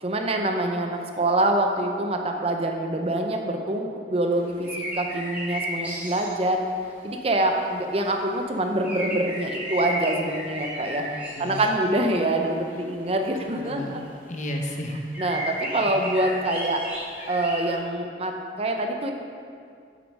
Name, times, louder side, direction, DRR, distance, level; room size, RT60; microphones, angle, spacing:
voice 1, 0.0-6.6 7.0-14.0 15.2-16.8 17.3-19.1, right 1 dB, 35° right, 3 dB, 0.6 m, -25 dB
sound 1, 4.4-6.4 8.0-8.1 8.8-11.8 12.1-12.8 13.2-13.3 13.9-14.0 14.3-14.4 14.7-14.8 15.1-17.7, equal, 10° right, 2.0 m, -34 dB
voice 2, 13.6-15.1 15.8-15.9, left 1 dB, 45° left, 2 dB, 0.9 m, -33 dB
7.8 x 6.8 x 5.4 m, 2.3 s
head